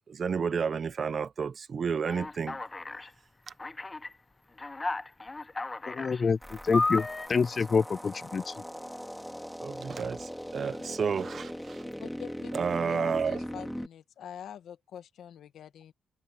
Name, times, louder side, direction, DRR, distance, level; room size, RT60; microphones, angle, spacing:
voice 1, 0.1-2.6 9.6-11.8 12.5-13.4, right 6 dB, 50° right, 1.3 m, -31 dB
Alarm, 2.1-3.1 3.6-4.1 4.6-6.2 6.7-7.3, left 3 dB, 25° left, 1.1 m, -33 dB
voice 2, 5.9-6.4 6.6-8.6, left 5 dB, 45° left, 0.4 m, -27 dB
sound 1, 6.4-13.9, equal, ahead, 2.9 m, -40 dB
voice 3, 12.0-12.5 12.8-15.9, left 9 dB, 75° left, 1.8 m, -45 dB
cardioid pair, 75°, 0 cm